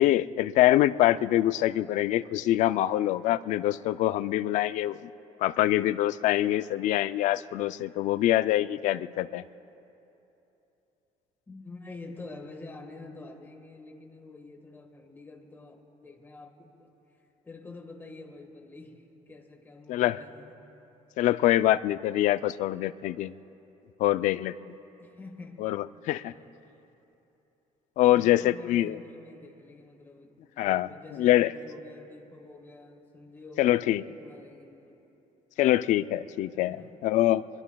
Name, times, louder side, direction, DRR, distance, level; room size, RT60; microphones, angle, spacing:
voice 1, 0.0-5.0 5.4-9.4 19.9-20.2 21.2-23.3 24.0-24.5 25.6-26.3 28.0-29.0 30.6-30.9 31.2-31.5 33.6-34.0 35.6-36.8 37.0-37.4, left 14 dB, 65° left, 15 dB, 0.4 m, -24 dB
voice 2, 11.5-16.7 17.4-20.6 25.0-25.7 26.3-26.7 28.0-35.0 36.5-37.0, left 3 dB, 15° left, 3 dB, 1.5 m, -47 dB
24.0 x 23.0 x 2.3 m, 3.0 s
cardioid pair, 150°, 13 cm